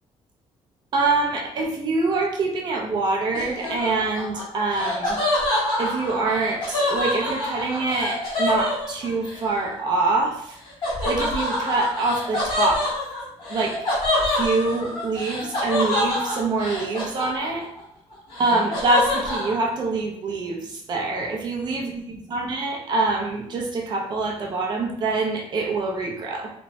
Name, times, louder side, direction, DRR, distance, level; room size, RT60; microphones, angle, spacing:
voice 1, 0.9-5.2 5.8-10.6 11.0-12.9 13.5-13.9 14.3-17.7 18.4-26.5, right 3 dB, 40° right, 0 dB, 0.5 m, -25 dB
Laughter, 3.3-9.4 10.8-17.8 18.1-19.5, left 1 dB, 45° left, 1.1 m, -26 dB
3.0 x 2.1 x 2.7 m, 0.71 s
cardioid pair, 180°, 11 cm